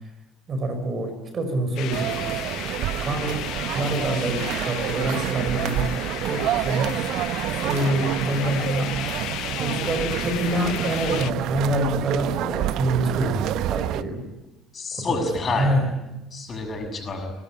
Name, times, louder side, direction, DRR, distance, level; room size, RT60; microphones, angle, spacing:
voice 1, 0.5-2.2 3.0-3.4 3.7-5.9 6.3-7.0 7.5-8.9 9.6-14.3 15.0-15.2 15.5-15.9, right 1 dB, 45° right, 7 dB, 5.6 m, -26 dB
sound 1, 1.8-11.3, left 14 dB, 65° left, 0.9 m, -34 dB
sound 2, 1.9-14.0, right 13 dB, 65° right, 0.8 m, -28 dB
voice 2, 14.7-15.7 16.3-17.3, left 3 dB, 40° left, 4 dB, 6.7 m, -28 dB
23.5 x 18.5 x 9.9 m, 0.96 s
hypercardioid pair, 55°, 0 cm